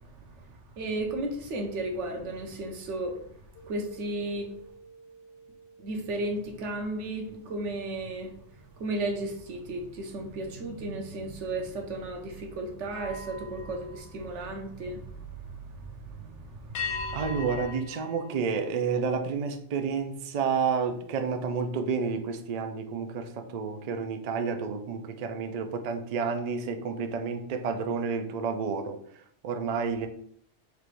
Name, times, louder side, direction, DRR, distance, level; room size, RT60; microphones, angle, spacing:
voice 1, 0.8-3.2 3.7-4.5 5.8-8.3 8.8-17.2, right 2 dB, 80° right, 3 dB, 1.0 m, -34 dB
sound 1, 3.5-9.1 9.6-9.9 12.8-15.0 16.7-19.3, left 4 dB, 75° left, 0.9 m, -43 dB
voice 2, 17.1-30.1, right 5 dB, 65° right, 6 dB, 0.4 m, -30 dB
4.6 x 3.4 x 2.5 m, 0.65 s
omnidirectional pair, 1.2 m